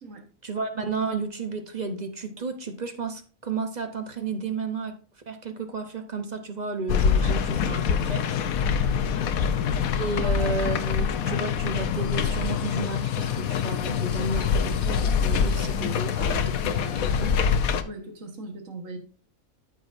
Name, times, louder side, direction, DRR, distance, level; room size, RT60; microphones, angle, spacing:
voice 1, 0.4-5.0 5.3-8.4 9.9-17.4, right 3 dB, 35° right, 6 dB, 1.0 m, -32 dB
sound 1, 6.9-17.8, left 7 dB, 85° left, 1.2 m, -25 dB
voice 2, 9.2-9.5 10.2-10.4 17.8-19.0, right 2 dB, 65° right, 3 dB, 1.9 m, -40 dB
13.0 x 6.1 x 2.7 m, 0.39 s
omnidirectional pair, 1.4 m